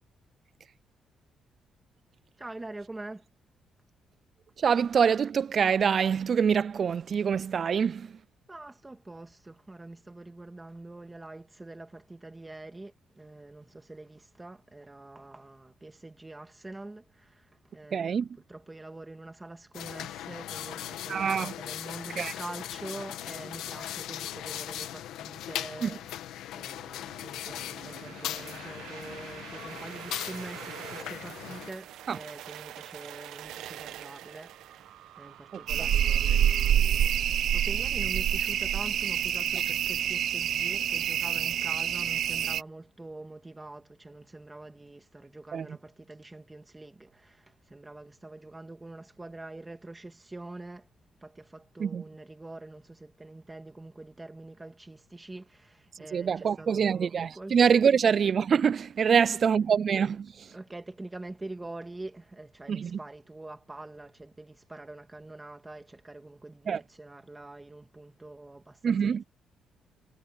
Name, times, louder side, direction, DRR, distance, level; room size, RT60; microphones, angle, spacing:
voice 1, 2.4-3.3 8.5-37.2 37.5-50.9 51.2-57.6 59.1-59.4 60.5-69.2, right 2 dB, 15° right, 2.6 m, -45 dB
voice 2, 4.6-8.2 17.9-18.3 21.1-21.5 22.2-22.3 25.8-25.9 32.1-32.2 35.5-35.9 45.5-45.8 51.8-52.0 56.1-60.5 62.7-63.0 66.7-66.8 68.8-69.2, right 7 dB, 50° right, 0.4 m, -25 dB
sound 1, 19.7-31.7, left 12 dB, 85° left, 1.5 m, -39 dB
sound 2, 27.0-36.8, right 12 dB, 85° right, 1.3 m, -45 dB
sound 3, 35.7-42.6, right 10 dB, 70° right, 1.1 m, -27 dB
cardioid pair, 90°, 0 cm